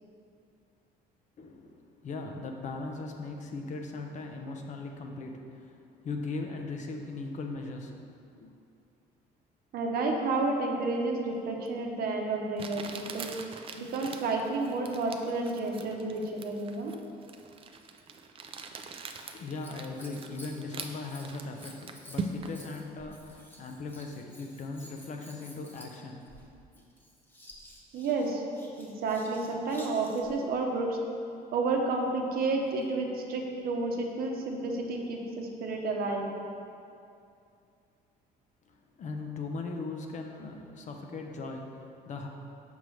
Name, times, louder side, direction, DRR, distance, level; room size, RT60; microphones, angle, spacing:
voice 1, 1.4-8.5 19.3-26.3 38.7-42.3, left 3 dB, 45° left, 3 dB, 0.6 m, -39 dB
voice 2, 9.7-13.3 13.8-16.9 27.9-28.4 28.8-31.0 31.5-36.3, right 3 dB, 65° right, 1 dB, 0.8 m, -31 dB
Crumpling crinkling, 11.7-11.8 12.6-22.7, right 4 dB, 35° right, 0.4 m, -42 dB
Scissors, 19.0-30.4 32.3-33.0 33.7-33.8, equal, 10° left, 0.9 m, -53 dB
6.1 x 5.3 x 3.2 m, 2.5 s
cardioid pair, 110°, 17 cm